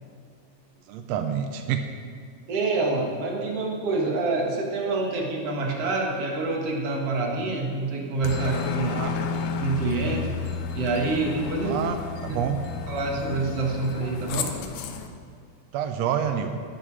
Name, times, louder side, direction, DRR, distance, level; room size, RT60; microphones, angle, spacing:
voice 1, 0.9-1.9 8.9-9.1 11.6-12.0 12.2-12.6 15.7-16.6, right 8 dB, 85° right, 7 dB, 1.5 m, -27 dB
voice 2, 2.5-9.1 9.6-10.3 10.7-11.8 12.3-12.4 12.9-14.5, right 3 dB, 50° right, 0 dB, 2.5 m, -27 dB
Aircraft, 8.2-15.1, left 5 dB, 85° left, 2.6 m, -32 dB
15.0 x 11.5 x 4.9 m, 2.1 s
omnidirectional pair, 3.9 m